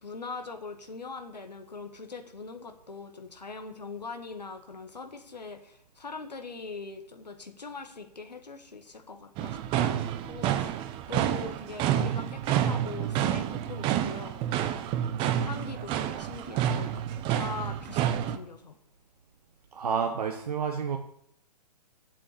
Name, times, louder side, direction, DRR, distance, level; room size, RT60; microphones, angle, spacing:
voice 1, 0.0-14.4 15.2-18.8, left 4 dB, 85° left, 5 dB, 1.6 m, -42 dB
sound 1, 9.4-18.4, right 10 dB, 25° right, 0.8 m, -29 dB
voice 2, 19.7-21.0, right 6 dB, 65° right, 3 dB, 1.3 m, -29 dB
7.9 x 7.6 x 8.6 m, 0.68 s
figure-of-eight pair, 120°, 21 cm